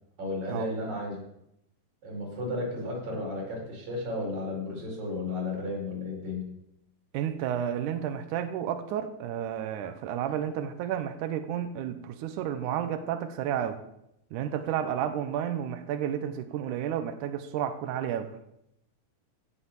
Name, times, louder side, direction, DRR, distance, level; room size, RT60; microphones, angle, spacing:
voice 1, 0.2-1.2 2.0-6.5, left 2 dB, 45° right, -1 dB, 6.0 m, -33 dB
voice 2, 7.1-13.8 14.3-18.3, right 9 dB, 80° right, 9 dB, 1.8 m, -31 dB
16.5 x 7.8 x 7.1 m, 0.82 s
omnidirectional pair, 4.6 m